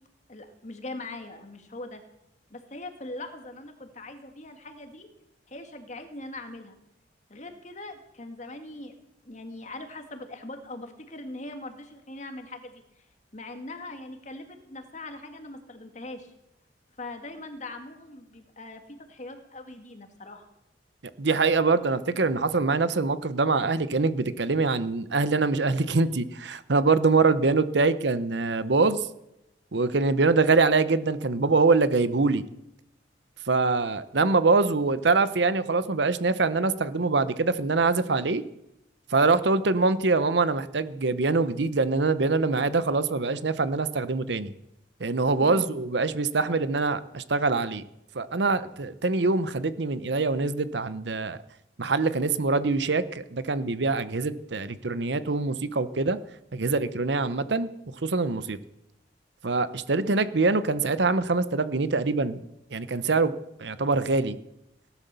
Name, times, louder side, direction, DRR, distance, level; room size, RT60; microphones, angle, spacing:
voice 1, 0.3-2.0 2.5-5.1 5.5-6.8 7.3-8.9 9.2-12.8 13.3-16.3 17.0-20.5 45.4-45.6 60.1-60.2, left 2 dB, 40° left, 6 dB, 2.0 m, -41 dB
voice 2, 21.2-29.1 29.7-32.4 33.5-38.4 39.1-44.5 45.0-47.8 48.1-51.4 51.8-56.2 56.5-57.7 58.0-58.6 59.4-62.4 62.7-63.3 63.6-64.4, right 3 dB, 65° right, 14 dB, 0.8 m, -24 dB
18.0 x 11.5 x 6.9 m, 0.86 s
head